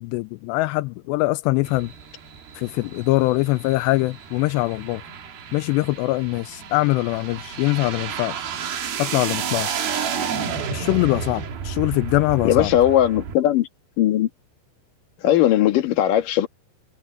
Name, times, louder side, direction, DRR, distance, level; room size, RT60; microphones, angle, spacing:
voice 1, 0.0-1.9 2.6-5.0 5.5-8.5 9.0-9.8 10.7-12.7, left 21 dB, 90° left, 2.4 m, -23 dB
sound 1, 1.6-13.3, right 7 dB, 55° right, 3.9 m, -31 dB
voice 2, 12.4-13.7 14.0-14.3 15.2-16.5, left 12 dB, 55° left, 2.8 m, -18 dB
omnidirectional pair, 5.5 m